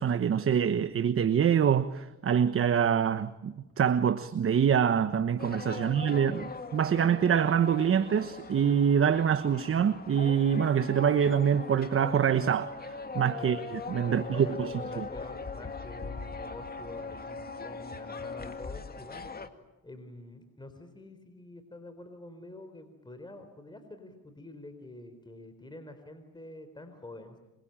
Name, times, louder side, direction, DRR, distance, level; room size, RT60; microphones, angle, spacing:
voice 1, 0.0-6.4 6.7-15.0, right 8 dB, 45° right, 1.2 m, -25 dB
sound 1, 5.4-19.5, left 4 dB, 30° left, 2.2 m, -40 dB
voice 2, 5.8-6.5 13.4-13.6 14.1-19.2 19.8-27.4, left 1 dB, 15° left, 4.0 m, -47 dB
26.5 x 24.0 x 8.9 m
cardioid pair, 90°, 30 cm